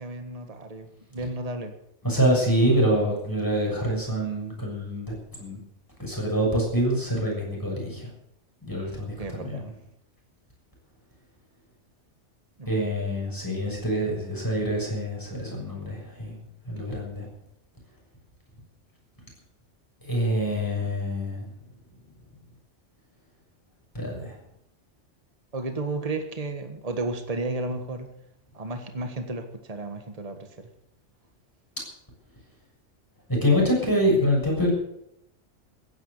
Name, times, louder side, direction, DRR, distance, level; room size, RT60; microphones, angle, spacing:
voice 1, 0.0-1.7 9.2-9.7 12.6-12.9 25.5-28.1 28.5-30.7, right 2 dB, 30° right, 6 dB, 1.6 m, -33 dB
voice 2, 2.0-5.6 6.0-8.1 8.7-9.7 12.7-16.4 16.7-17.3 20.0-21.5 23.9-24.4 33.3-34.7, equal, 15° left, -2 dB, 7.0 m, -25 dB
15.5 x 10.5 x 8.3 m, 0.78 s
omnidirectional pair, 1.2 m